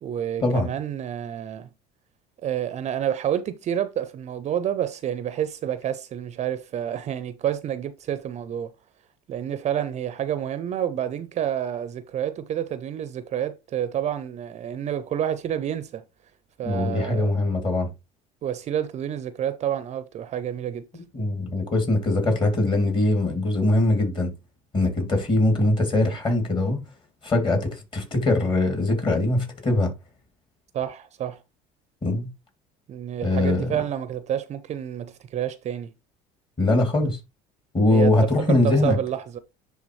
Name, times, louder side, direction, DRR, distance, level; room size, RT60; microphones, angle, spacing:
voice 1, 0.0-1.7 2.4-8.7 9.3-16.0 16.6-17.3 18.4-20.8 30.7-31.4 32.9-35.9 37.9-39.4, right 10 dB, 40° right, 0.5 m, -29 dB
voice 2, 16.6-17.9 20.9-24.3 24.7-26.8 27.2-29.9 32.0-32.3 33.2-33.7 36.6-37.2 37.7-39.0, left 2 dB, 30° left, 2.6 m, -22 dB
10.5 x 3.4 x 3.1 m
cardioid pair, 115°, 17 cm